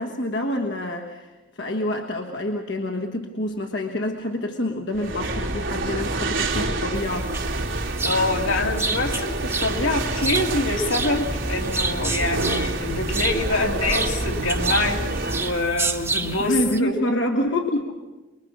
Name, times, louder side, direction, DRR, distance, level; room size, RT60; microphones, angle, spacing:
voice 1, 0.0-7.3 16.2-17.8, left 1 dB, 60° left, 3 dB, 1.4 m, -27 dB
sound 1, 4.9-15.7, right 2 dB, 85° right, 2.8 m, -27 dB
sound 2, 6.9-16.8, right 3 dB, 15° right, 0.7 m, -30 dB
voice 2, 8.0-16.9 17.7-17.8, left 2 dB, 80° left, 2 dB, 2.5 m, -25 dB
24.0 x 22.0 x 6.3 m, 1.2 s
head